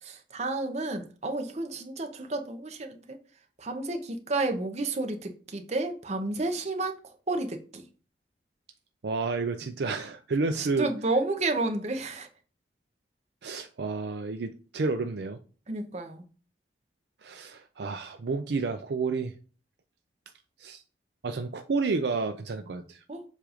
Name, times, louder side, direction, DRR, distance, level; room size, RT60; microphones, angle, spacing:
voice 1, 0.0-3.2 3.6-7.8 10.6-12.3 15.7-16.2 23.1-23.2, right 2 dB, 40° right, 0.8 m, -31 dB
voice 2, 9.0-10.9 13.4-15.4 17.2-19.3 20.6-20.8 21.2-23.0, right 4 dB, 65° right, 0.4 m, -30 dB
7.5 x 2.5 x 4.9 m
head